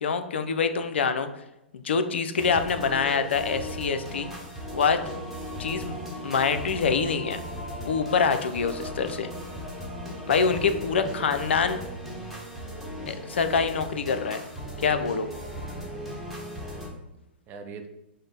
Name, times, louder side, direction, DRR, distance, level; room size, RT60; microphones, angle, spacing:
voice 1, 0.0-1.3 1.8-4.3 4.7-5.0 5.6-5.9 6.2-7.4 7.8-9.3 10.3-11.8 13.1-14.4 14.8-15.3, left 5 dB, 75° left, 9 dB, 0.4 m, -25 dB
sound 1, 2.4-16.9, equal, ahead, 1.1 m, -37 dB
voice 2, 10.9-12.0 15.6-16.0 17.5-17.9, right 6 dB, 30° right, 5 dB, 0.5 m, -44 dB
5.0 x 2.0 x 3.9 m, 0.89 s
hypercardioid pair, 110°, 6 cm